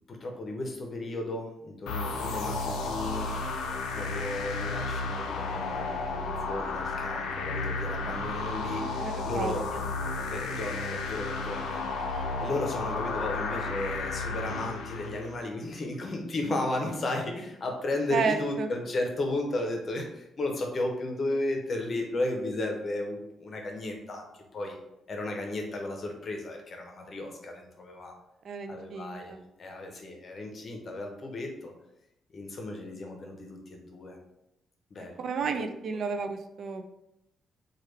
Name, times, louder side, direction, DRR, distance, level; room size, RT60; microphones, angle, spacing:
voice 1, 0.1-3.3 3.9-9.7 10.2-24.8 25.1-28.1 28.7-31.7 32.3-34.2 34.9-35.5, left 2 dB, 45° left, 2 dB, 0.7 m, -34 dB
sound 1, 1.9-15.4, left 3 dB, 85° left, 0.4 m, -33 dB
voice 2, 6.2-6.8 9.0-9.8 18.1-18.7 28.4-29.2 35.2-36.8, right 5 dB, 60° right, 7 dB, 0.3 m, -32 dB
3.1 x 2.3 x 3.3 m, 0.86 s
cardioid pair, 90°, 0 cm